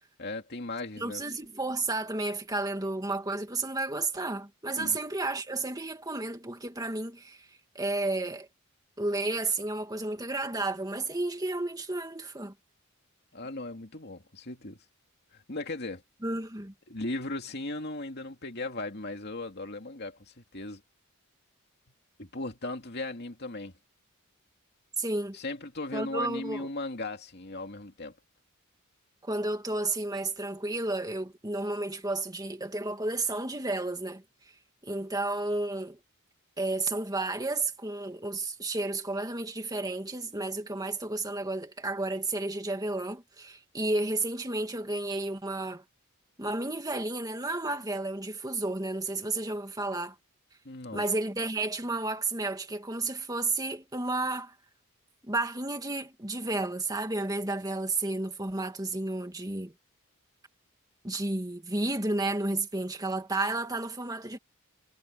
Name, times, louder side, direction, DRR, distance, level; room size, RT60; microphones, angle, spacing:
voice 1, 0.2-1.2 4.7-5.0 13.3-14.8 15.3-16.0 16.9-20.8 22.2-23.7 25.3-28.2 50.6-51.0, left 2 dB, 50° left, 2.5 m, -37 dB
voice 2, 1.0-7.5 7.7-8.5 9.0-12.5 16.2-16.7 25.0-25.4 25.9-26.7 29.2-34.2 34.8-36.0 36.6-45.8 46.4-50.2 50.9-54.5 55.2-59.7 61.0-64.4, right 2 dB, 15° right, 2.3 m, -32 dB
head